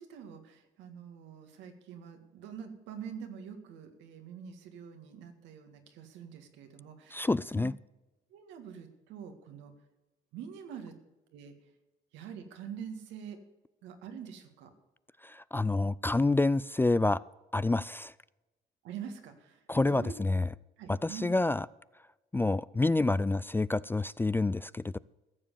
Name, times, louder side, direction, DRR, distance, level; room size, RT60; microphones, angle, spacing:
voice 1, 0.0-7.2 7.5-7.7 8.3-9.7 10.3-11.0 11.3-11.5 12.1-13.4 13.8-14.7 18.8-19.6 19.9-20.1 20.8-21.3, right 7 dB, 85° right, 6 dB, 1.9 m, -45 dB
voice 2, 7.1-7.8 15.2-17.2 17.5-18.1 19.7-20.5 20.9-21.7 22.3-25.0, left 2 dB, 10° left, 19 dB, 0.3 m, -28 dB
15.0 x 7.3 x 6.9 m, 1.1 s
supercardioid pair, 80°, 18 cm